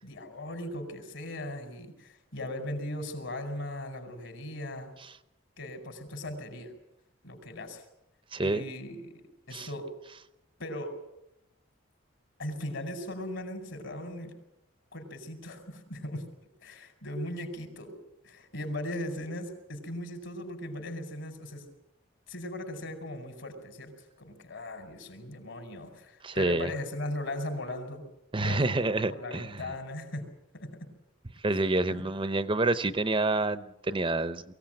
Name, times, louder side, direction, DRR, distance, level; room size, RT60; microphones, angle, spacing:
voice 1, 0.0-4.9 5.6-6.7 7.2-7.8 8.4-9.9 10.6-10.9 12.4-14.3 14.9-16.3 16.6-18.0 18.2-21.6 22.3-23.9 24.2-28.0 28.4-30.2 30.5-30.9 31.9-32.0, left 1 dB, 65° left, 6 dB, 5.0 m, -38 dB
voice 2, 8.3-8.6 9.5-9.7 26.2-26.7 28.3-29.6 31.4-34.4, right 2 dB, 25° right, 12 dB, 0.7 m, -28 dB
23.0 x 16.5 x 9.0 m, 0.83 s
head